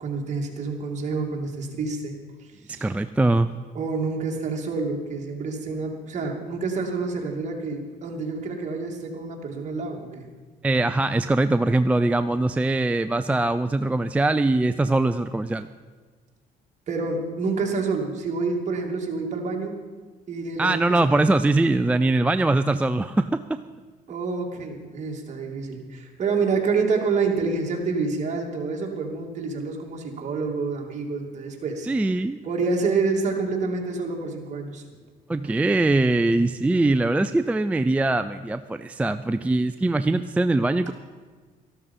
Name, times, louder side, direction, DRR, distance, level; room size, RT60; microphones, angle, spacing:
voice 1, 0.0-2.2 2.7-2.9 3.7-10.3 16.9-19.8 20.3-21.0 24.1-31.9 32.4-34.8 35.4-35.6 40.9-41.0, right 4 dB, 45° right, 0 dB, 2.7 m, -28 dB
voice 2, 2.8-3.5 10.6-15.7 20.6-23.6 31.9-32.4 35.3-40.9, right 2 dB, 10° right, 10 dB, 0.4 m, -22 dB
13.5 x 12.5 x 5.6 m, 1.5 s
cardioid pair, 110°, 17 cm